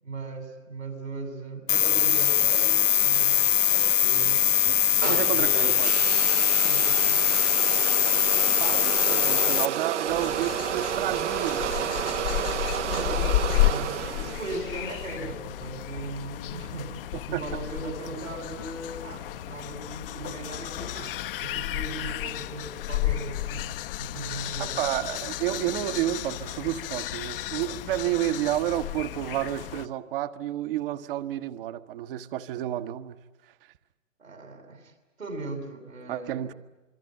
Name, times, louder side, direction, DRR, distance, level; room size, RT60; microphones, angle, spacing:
voice 1, 0.0-4.5 4.9-5.7 6.5-7.2 12.8-16.9 17.2-24.9 34.2-36.5, right 3 dB, 85° right, 6.8 m, -38 dB
sound 1, 1.7-9.7, left 10 dB, 70° left, 1.1 m, -22 dB
sound 2, 5.0-15.2, right 9 dB, 60° right, 1.2 m, -31 dB
voice 2, 5.1-5.9 8.6-11.7 17.3-17.4 24.6-33.2 36.1-36.5, right 13 dB, 45° right, 1.3 m, -30 dB
sound 3, 10.1-29.9, left 15 dB, 45° left, 0.9 m, -32 dB
26.0 x 24.0 x 9.0 m
figure-of-eight pair, 120°, 39 cm